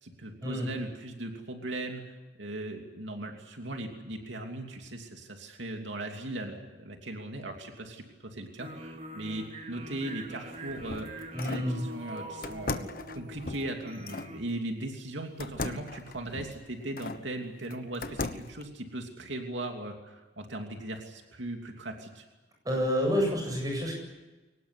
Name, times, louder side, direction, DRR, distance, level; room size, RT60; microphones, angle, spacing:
voice 1, 0.0-12.9 13.1-22.2, right 1 dB, 90° right, 3 dB, 2.9 m, -38 dB
sound 1, 8.6-14.4, right 1 dB, 40° right, 2.9 m, -44 dB
sound 2, 10.4-11.7 12.4-14.3 15.4-17.2 17.7-18.6, left 2 dB, 50° left, 1.2 m, -38 dB
voice 2, 11.3-11.8 22.6-23.9, equal, 20° right, 1 dB, 8.0 m, -28 dB
23.0 x 19.0 x 9.7 m, 1.2 s
head